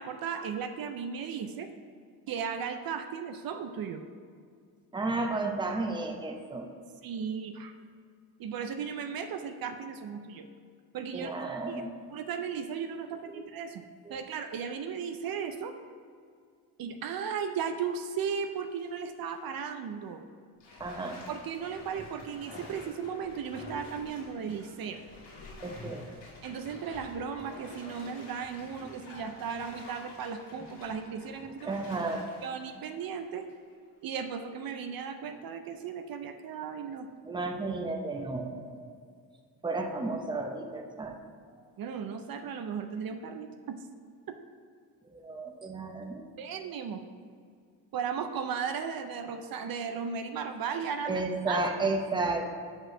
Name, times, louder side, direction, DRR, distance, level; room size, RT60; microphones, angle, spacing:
voice 1, 0.0-1.7 2.3-4.0 7.0-7.7 8.4-10.5 10.9-11.8 12.1-13.8 14.1-15.7 16.8-20.2 21.3-25.0 26.4-31.7 32.4-33.5 34.0-37.1 41.8-43.8 46.4-47.1 47.9-51.6, right 6 dB, 60° right, 7 dB, 0.6 m, -36 dB
voice 2, 4.9-6.7 11.1-11.9 13.3-13.4 14.0-14.2 20.8-21.2 25.6-26.0 31.7-32.3 37.2-38.9 39.6-41.2 45.1-46.2 51.0-52.4, right 3 dB, 10° right, 2 dB, 0.7 m, -32 dB
Bathtub (filling or washing), 18.4-18.8 19.3-19.4 20.6-33.7 34.1-34.2, left 1 dB, 90° left, 2.1 m, -48 dB
6.1 x 5.4 x 6.0 m, 2.1 s
cardioid pair, 120°, 39 cm